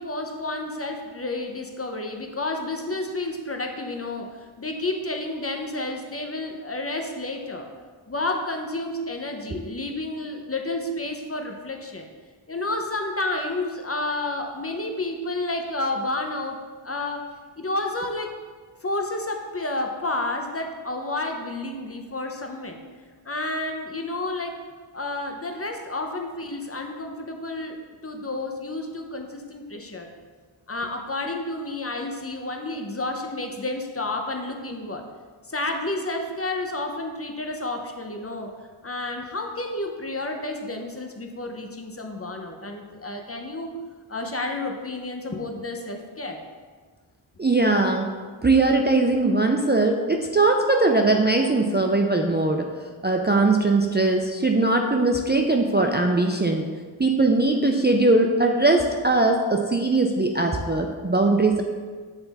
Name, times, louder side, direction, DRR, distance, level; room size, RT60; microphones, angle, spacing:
voice 1, 0.0-7.7 8.1-12.1 12.5-16.6 16.8-17.3 17.6-18.3 18.8-22.8 23.3-24.6 24.9-27.8 28.0-30.1 30.7-35.0 35.5-38.5 38.8-43.8 44.1-46.4, left 2 dB, 30° left, 3 dB, 0.7 m, -30 dB
voice 2, 47.4-48.1 48.4-52.7 53.0-56.7 57.0-61.6, right 2 dB, 25° right, 2 dB, 0.4 m, -20 dB
8.1 x 3.3 x 4.1 m, 1.5 s
wide cardioid pair, 55°, 48 cm